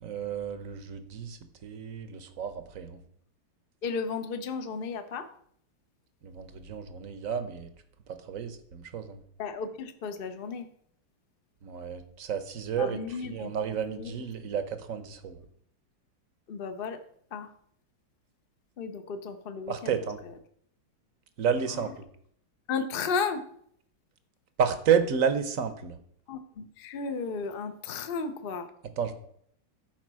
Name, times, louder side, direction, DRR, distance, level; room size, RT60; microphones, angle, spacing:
voice 1, 0.0-3.0 6.2-7.7 8.1-9.2 11.6-15.4 19.7-20.2 21.4-22.0 24.6-26.0 29.0-29.1, right 7 dB, 55° right, 11 dB, 1.0 m, -31 dB
voice 2, 3.8-5.3 9.4-10.7 12.7-13.5 13.9-14.2 16.5-17.0 17.3-17.5 18.8-20.0 20.2-20.3 21.7-21.9 22.7-23.4 26.3-28.7, left 5 dB, 55° left, 8 dB, 0.6 m, -34 dB
12.0 x 4.9 x 6.2 m, 0.66 s
omnidirectional pair, 2.2 m